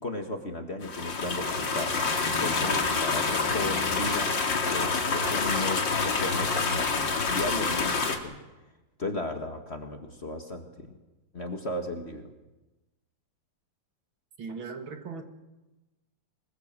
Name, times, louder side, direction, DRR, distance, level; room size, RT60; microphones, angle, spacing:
voice 1, 0.0-4.3 4.7-6.8 7.3-8.4 9.0-10.9 11.3-12.3, left 2 dB, 30° left, 5 dB, 2.0 m, -35 dB
sound 1, 0.8-8.2, left 4 dB, 60° left, 2.9 m, -27 dB
voice 2, 14.4-15.2, right 5 dB, 65° right, 5 dB, 2.8 m, -38 dB
26.0 x 21.0 x 7.6 m, 1.1 s
omnidirectional pair, 2.4 m